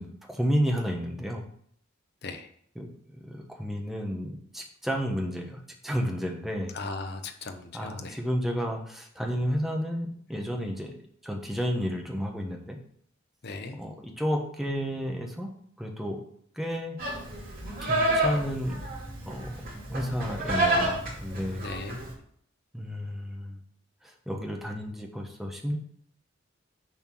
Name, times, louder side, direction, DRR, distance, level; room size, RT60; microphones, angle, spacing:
voice 1, 0.0-1.4 2.8-2.9 3.2-6.7 7.7-10.9 11.2-12.8 13.8-15.5 15.8-16.2 16.6-17.0 17.8-18.8 19.2-19.6 19.9-21.6 22.7-23.6 24.0-25.8, equal, ahead, 1 dB, 1.1 m, -31 dB
voice 2, 6.7-8.2 13.4-13.8 21.6-22.0, left 3 dB, 55° left, 7 dB, 0.9 m, -37 dB
Livestock farm animals working animals, 17.0-22.1, right 1 dB, 45° right, 2.6 m, -29 dB
7.1 x 4.4 x 6.0 m, 0.63 s
head